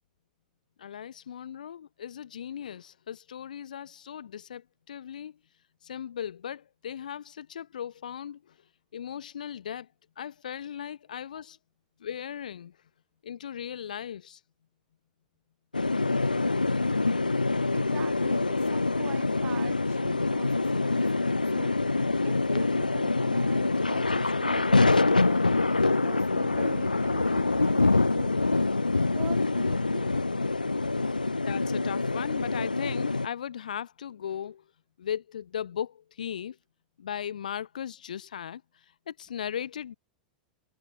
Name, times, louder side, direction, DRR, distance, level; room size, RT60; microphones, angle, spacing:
voice 1, 0.8-5.4 5.8-8.6 8.9-9.9 10.2-11.6 12.0-12.8 13.2-14.4 31.2-34.6 35.0-36.6 37.0-39.9, left 9 dB, 70° left, 1.6 m, -37 dB
sound 1, 15.7-33.3, left 3 dB, 90° left, 0.5 m, -25 dB
voice 2, 17.7-21.0 21.4-21.8 22.2-28.5 29.1-30.1, right 19 dB, 40° right, 7.2 m, -46 dB
figure-of-eight pair, 95°, 4 cm